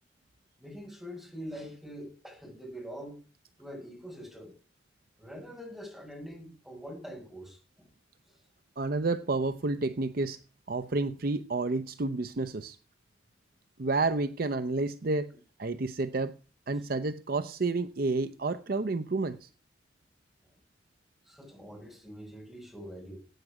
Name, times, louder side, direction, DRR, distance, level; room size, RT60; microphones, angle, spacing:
voice 1, 0.6-3.2 3.6-4.5 5.2-7.9 21.2-23.2, equal, ahead, 5.3 m, -44 dB
voice 2, 8.8-10.4 10.7-12.8 13.8-15.3 15.6-16.4 16.7-19.5, right 3 dB, 50° right, 0.6 m, -30 dB
14.5 x 8.9 x 4.8 m
head